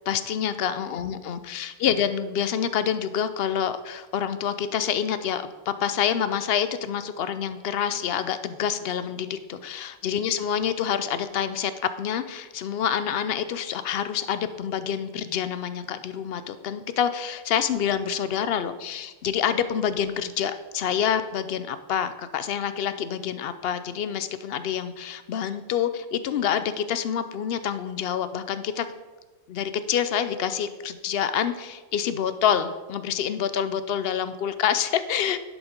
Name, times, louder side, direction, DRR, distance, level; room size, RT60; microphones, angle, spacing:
voice 1, 0.1-11.7 12.0-28.9 29.5-35.4, left 8 dB, 65° left, 12 dB, 0.6 m, -27 dB
10.5 x 5.0 x 5.1 m, 1.3 s
omnidirectional pair, 1.4 m